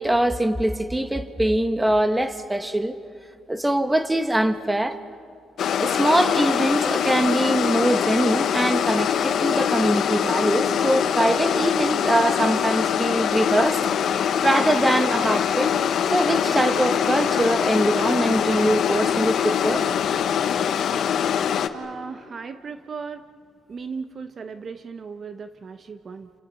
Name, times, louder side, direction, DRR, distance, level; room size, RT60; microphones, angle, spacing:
voice 1, 0.0-3.0 3.5-5.0 5.8-13.8 14.1-15.8 16.1-19.9, right 1 dB, 10° right, 9 dB, 1.5 m, -23 dB
sound 1, 5.6-21.7, left 8 dB, 65° left, 1.2 m, -23 dB
voice 2, 21.7-23.2 23.7-26.3, right 5 dB, 45° right, 9 dB, 1.0 m, -36 dB
29.5 x 28.0 x 5.6 m, 2.4 s
cardioid pair, 90°, 0 cm